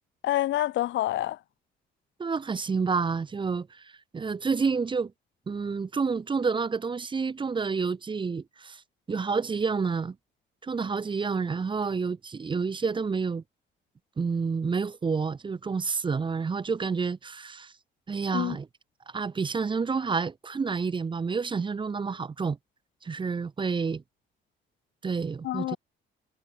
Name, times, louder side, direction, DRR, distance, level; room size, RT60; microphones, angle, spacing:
voice 1, 0.2-1.4 18.3-18.6 25.4-25.8, left 14 dB, 70° left, 0.5 m, -27 dB
voice 2, 2.2-5.1 5.5-8.8 9.1-10.2 10.6-13.4 14.2-17.7 18.1-18.7 19.1-22.6 23.0-24.0 25.0-25.8, right 5 dB, 25° right, 0.5 m, -29 dB
cardioid pair, 90°, 20 cm